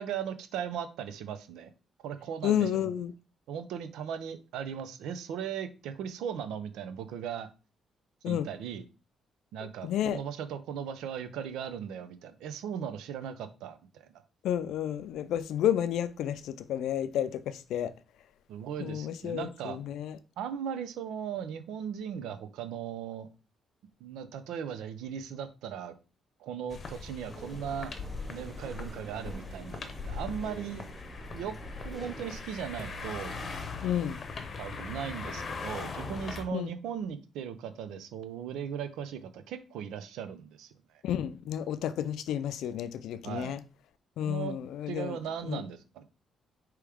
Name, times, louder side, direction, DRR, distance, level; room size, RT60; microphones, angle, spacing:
voice 1, 0.0-1.7 2.0-2.9 3.5-7.5 8.2-8.8 9.5-14.2 18.5-19.8 20.4-23.3 24.0-25.9 26.4-27.9 28.3-30.8 31.3-31.6 31.8-33.7 34.6-41.0 43.2-43.5 44.2-44.5 44.9-46.0, right 8 dB, 90° right, 0.5 m, -38 dB
voice 2, 2.4-3.1 8.2-8.5 9.8-10.2 14.4-17.9 18.8-20.2 33.8-34.2 36.5-36.7 41.0-43.6 44.2-45.2 45.5-45.6, left 10 dB, 80° left, 0.4 m, -31 dB
sound 1, 26.7-36.4, left 4 dB, 45° left, 0.8 m, -40 dB
sound 2, 27.3-32.4, right 2 dB, 15° right, 0.8 m, -48 dB
4.8 x 3.0 x 3.5 m
cardioid pair, 90°, 0 cm